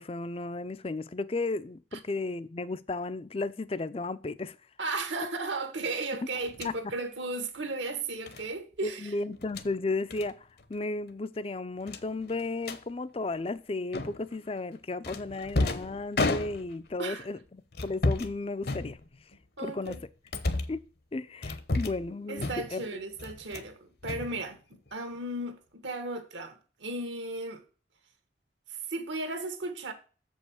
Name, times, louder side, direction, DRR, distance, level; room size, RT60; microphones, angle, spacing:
voice 1, 0.0-4.6 6.6-6.7 8.8-19.0 19.6-20.0 20.7-20.8 21.1-22.8, left 3 dB, 30° left, 0.4 m, -34 dB
voice 2, 4.8-9.1 17.0-17.3 19.6-20.0 22.3-24.6 24.9-27.6 28.7-29.9, right 2 dB, 70° right, 1.4 m, -35 dB
sound 1, 6.5-6.8 8.3-8.5 9.3-9.7 10.1-10.3 10.6-10.8 11.1-11.2 11.9-12.8 13.9-14.4 15.0-16.9 17.7-18.3 18.6-19.3 19.8-20.8 21.4-22.1 22.4-22.8 23.2-23.7 24.0-24.9, left 2 dB, 55° left, 0.8 m, -32 dB
7.2 x 5.3 x 6.3 m
head